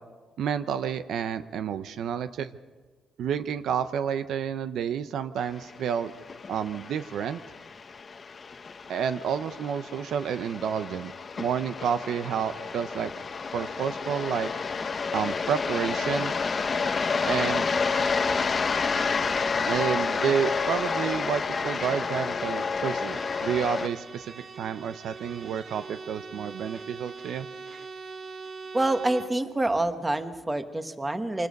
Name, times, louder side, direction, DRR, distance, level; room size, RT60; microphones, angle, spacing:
voice 1, 0.4-2.5 3.2-6.1 6.5-7.4 8.9-11.1 11.4-13.1 13.5-14.5 15.1-16.3 17.3-17.7 19.7-27.5, right 8 dB, 75° right, 11 dB, 0.7 m, -30 dB
sound 1, 5.6-23.9, left 5 dB, 35° left, 0.8 m, -30 dB
Bowed string instrument, 22.8-29.4, right 4 dB, 45° right, 1.0 m, -42 dB
voice 2, 28.7-31.5, right 2 dB, 15° right, 8 dB, 1.3 m, -27 dB
26.5 x 20.0 x 5.3 m, 1.4 s
cardioid pair, 115°, 0 cm